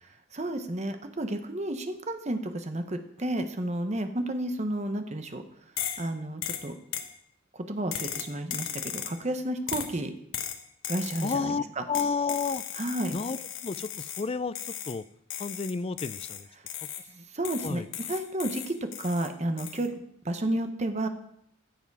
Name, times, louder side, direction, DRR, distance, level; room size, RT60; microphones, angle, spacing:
voice 1, 0.0-5.4 6.0-6.8 7.5-10.1 10.9-11.8 12.8-13.1 17.1-17.8 18.1-21.1, right 1 dB, 35° right, 7 dB, 1.0 m, -32 dB
sound 1, 5.8-6.1 6.4-7.1 7.9-9.2 9.7-10.0 10.3-11.5 11.9-14.3 14.6-15.0 15.3-17.1 17.4-19.3 19.6-19.9, left 10 dB, 85° left, 1.0 m, -37 dB
voice 2, 11.2-12.6 13.1-14.6 14.9-15.0 15.4-16.5 17.6-17.9, left 5 dB, 30° left, 15 dB, 0.3 m, -31 dB
15.5 x 7.0 x 4.8 m, 0.73 s
head